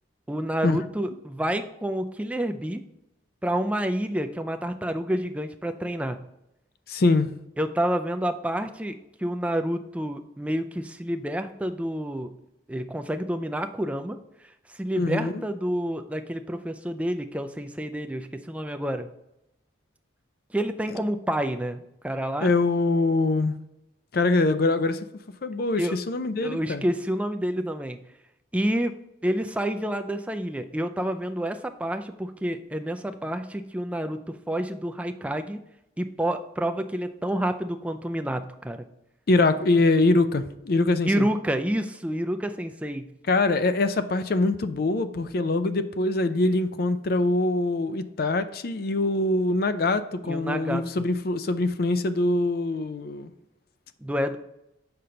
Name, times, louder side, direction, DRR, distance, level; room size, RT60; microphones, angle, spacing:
voice 1, 0.3-2.8 3.4-6.2 7.6-12.3 12.7-19.1 20.5-22.5 25.8-26.0 26.4-28.0 28.5-28.9 29.2-35.6 36.0-38.9 41.1-43.1 50.2-51.0 54.0-54.4, right 1 dB, 5° right, 0.4 m, -29 dB
voice 2, 6.9-7.3 15.0-15.4 22.4-23.6 24.1-25.1 25.4-26.8 39.3-41.3 43.3-53.3, left 2 dB, 50° left, 0.4 m, -23 dB
6.7 x 5.6 x 3.8 m
head